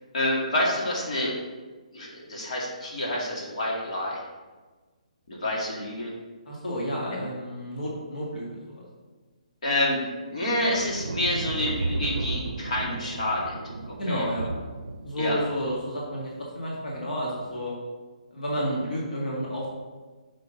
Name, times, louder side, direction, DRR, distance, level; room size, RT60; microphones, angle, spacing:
voice 1, 0.1-1.4 1.9-4.2 5.3-6.1 7.1-7.2 9.6-10.0 10.3-13.5 13.8-14.3 15.2-15.4, left 1 dB, 60° left, -4 dB, 2.2 m, -28 dB
voice 2, 6.5-8.8 14.0-14.5 15.0-17.7 18.3-19.7, equal, 80° left, -5 dB, 1.9 m, -31 dB
sound 1, 10.6-16.1 17.3-17.6, right 3 dB, 90° right, 0.5 m, -34 dB
6.3 x 5.5 x 3.9 m, 1.3 s
hypercardioid pair, 145°, 4 cm